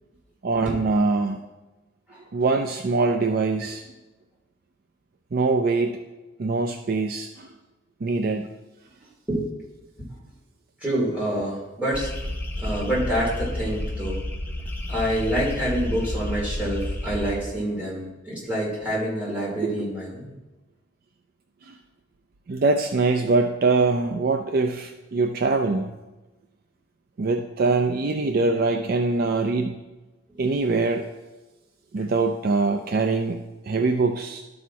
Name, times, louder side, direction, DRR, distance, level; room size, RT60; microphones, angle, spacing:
voice 1, 0.4-1.4 2.3-3.8 5.3-6.0 6.4-7.5 8.0-8.5 19.6-19.7 21.7-21.8 22.5-25.9 27.2-29.8 30.4-31.1 31.9-34.4, right 3 dB, 45° right, 5 dB, 0.4 m, -23 dB
voice 2, 10.8-12.1 12.6-14.2 14.9-20.3 30.3-30.5, right 1 dB, 5° right, -7 dB, 2.9 m, -27 dB
sound 1, 11.9-17.4, left 1 dB, 10° left, 0.9 m, -30 dB
12.0 x 4.2 x 4.6 m, 1.1 s
head